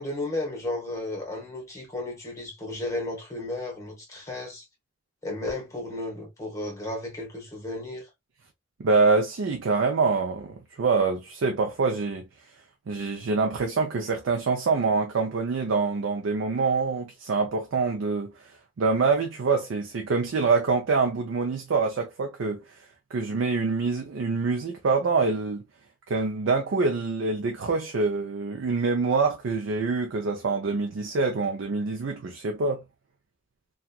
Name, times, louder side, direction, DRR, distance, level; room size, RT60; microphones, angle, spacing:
voice 1, 0.0-4.6 5.2-8.1, left 2 dB, 15° left, 1.1 m, -33 dB
voice 2, 8.8-12.3 12.9-18.3 18.8-22.6 23.1-25.6 26.1-32.8, right 4 dB, 75° right, 0.5 m, -25 dB
2.8 x 2.3 x 2.3 m
head